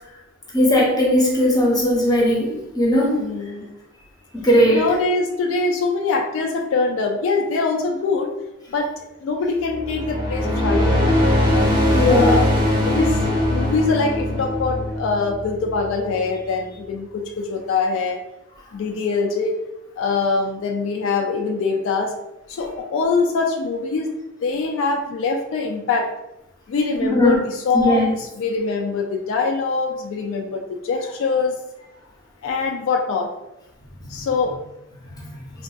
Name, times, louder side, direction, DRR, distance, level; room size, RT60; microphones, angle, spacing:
voice 1, 0.5-3.2 4.3-4.8 11.9-12.4 27.0-27.4 27.7-28.1 34.1-34.2, left 1 dB, 20° left, -4 dB, 0.7 m, -18 dB
voice 2, 3.1-3.7 4.7-8.3 8.7-8.9 9.2-11.6 12.1-12.5 12.8-13.2 13.5-18.2 18.7-19.6 20.0-22.1 22.5-24.1 24.4-26.1 26.7-31.5 32.4-33.3 34.1-34.6, left 4 dB, 70° left, 3 dB, 0.3 m, -23 dB
sound 1, 9.6-16.3, left 1 dB, 20° right, 0.6 m, -21 dB
3.5 x 2.3 x 2.3 m, 0.92 s
head